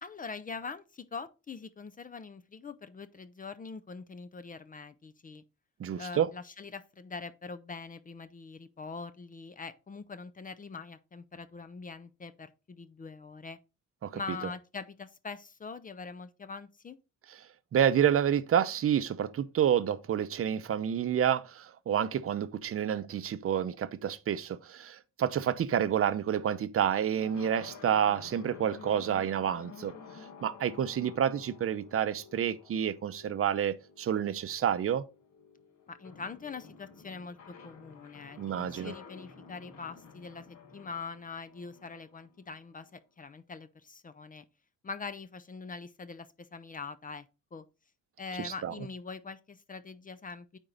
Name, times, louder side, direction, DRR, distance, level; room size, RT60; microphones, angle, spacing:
voice 1, 0.0-5.4 6.0-13.6 14.1-17.0 35.9-44.4 44.8-47.3 47.5-47.6 48.2-50.6, left 4 dB, 25° left, 0.5 m, -43 dB
voice 2, 5.8-6.3 14.0-14.1 17.7-29.9 30.4-35.0 38.4-38.9 48.4-48.7, right 9 dB, 45° right, 0.6 m, -29 dB
sound 1, 27.2-42.9, left 5 dB, 60° left, 1.7 m, -52 dB
8.9 x 4.5 x 3.9 m
wide cardioid pair, 165°, 31 cm